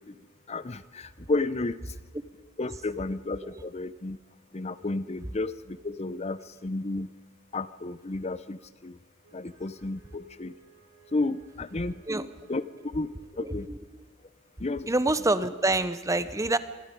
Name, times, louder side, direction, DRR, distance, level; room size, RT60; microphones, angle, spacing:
voice 1, 0.5-1.9 2.6-4.2 4.5-7.1 7.5-9.0 9.3-10.5 11.1-12.0 12.5-13.7 14.6-14.9, left 2 dB, 30° left, 15 dB, 0.6 m, -32 dB
Wind instrument woodwind instrument, 9.2-13.4, right 7 dB, 45° right, 4.9 m, -59 dB
voice 2, 13.4-13.8 14.9-16.6, right 2 dB, 15° right, 14 dB, 0.8 m, -26 dB
26.5 x 21.0 x 5.2 m, 1.3 s
head